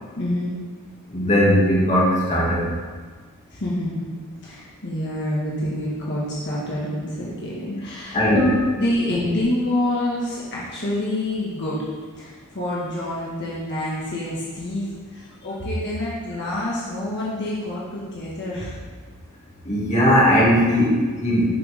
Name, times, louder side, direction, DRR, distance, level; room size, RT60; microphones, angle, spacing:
voice 1, 0.2-0.5 3.5-4.1 4.4-11.8 12.2-14.9 15.1-18.8 21.3-21.5, left 1 dB, 55° left, -7 dB, 1.7 m, -27 dB
voice 2, 1.1-2.7 8.1-8.4 19.7-21.5, equal, 35° left, -6 dB, 2.1 m, -18 dB
10.5 x 6.1 x 3.5 m, 1.5 s
head